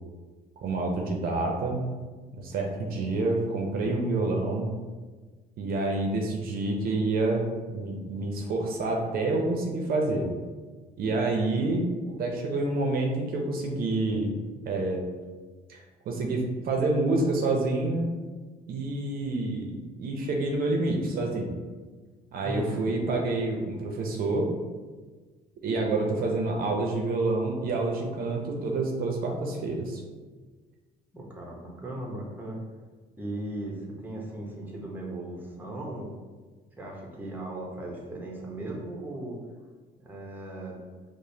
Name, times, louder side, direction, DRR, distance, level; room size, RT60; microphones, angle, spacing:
voice 1, 0.6-1.8 2.3-4.7 5.6-10.3 11.0-15.1 15.7-18.1 18.7-21.5 22.3-24.6 25.6-30.0, right 2 dB, 60° right, 1 dB, 0.6 m, -28 dB
voice 2, 22.4-22.9 31.1-32.6 33.2-36.1 36.8-39.4 40.0-40.8, right 1 dB, 10° right, -2 dB, 0.8 m, -37 dB
4.9 x 2.1 x 2.7 m, 1.4 s
cardioid pair, 110°, 17 cm